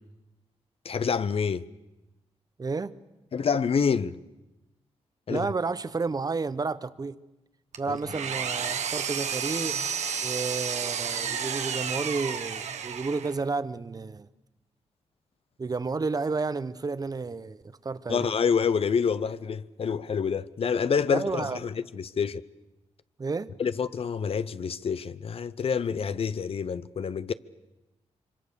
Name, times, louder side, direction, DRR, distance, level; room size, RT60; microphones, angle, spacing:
voice 1, 0.8-1.6 3.3-4.2 5.3-5.5 7.9-8.0 18.1-22.4 23.6-27.3, left 6 dB, 55° left, 0.8 m, -27 dB
voice 2, 2.6-2.9 5.3-7.2 7.8-9.9 10.2-14.3 15.6-18.3 21.1-21.6 23.2-23.5, right 4 dB, 35° right, 0.9 m, -31 dB
Engine, 7.7-13.5, right 7 dB, 85° right, 1.4 m, -31 dB
26.0 x 24.5 x 6.9 m
cardioid pair, 90°, 12 cm